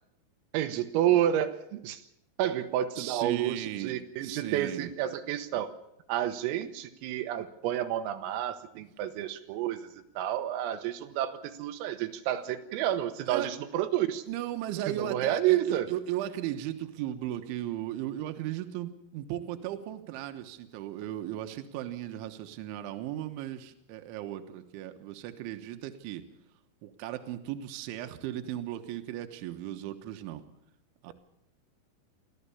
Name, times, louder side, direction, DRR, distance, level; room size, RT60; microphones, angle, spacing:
voice 1, 0.5-2.0 2.4-5.7 6.1-14.3 14.9-15.9, right 11 dB, 90° right, 7 dB, 3.8 m, -30 dB
voice 2, 3.0-4.9 13.3-13.5 14.3-26.2 26.8-30.4 31.0-31.1, right 12 dB, 75° right, 7 dB, 3.5 m, -36 dB
25.0 x 15.0 x 7.1 m, 0.82 s
omnidirectional pair, 5.9 m